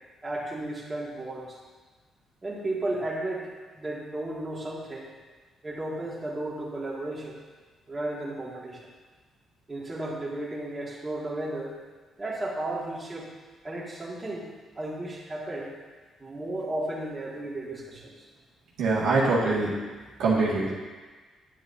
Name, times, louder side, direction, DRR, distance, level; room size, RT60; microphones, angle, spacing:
voice 1, 0.2-1.6 2.4-5.1 5.6-7.4 7.9-8.9 9.7-11.8 12.2-13.3 13.6-14.5 14.8-15.7 16.2-18.3 19.4-19.5, right 1 dB, 25° right, -5 dB, 1.9 m, -34 dB
voice 2, 18.8-19.9 20.2-20.7, right 3 dB, 90° right, -6 dB, 1.9 m, -24 dB
9.9 x 7.8 x 2.7 m, 1.4 s
cardioid pair, 90°, 0 cm